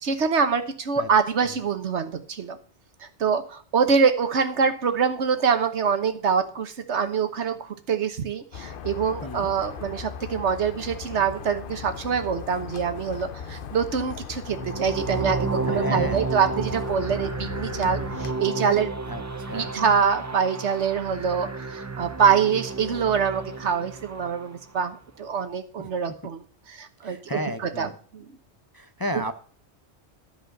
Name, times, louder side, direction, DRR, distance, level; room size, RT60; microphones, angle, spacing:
voice 1, 0.0-2.6 3.0-18.9 19.5-26.4 26.7-27.4 27.8-28.4, right 6 dB, 80° right, 9 dB, 1.4 m, -25 dB
sound 1, 8.5-18.3, left 7 dB, 55° left, 0.8 m, -38 dB
sound 2, 14.4-24.6, right 3 dB, 25° right, 0.4 m, -32 dB
voice 2, 15.7-16.2 19.1-19.7 25.8-25.9 27.0-28.0 28.7-29.4, equal, 25° left, 9 dB, 0.5 m, -33 dB
13.0 x 5.0 x 6.4 m, 0.43 s
omnidirectional pair, 1.2 m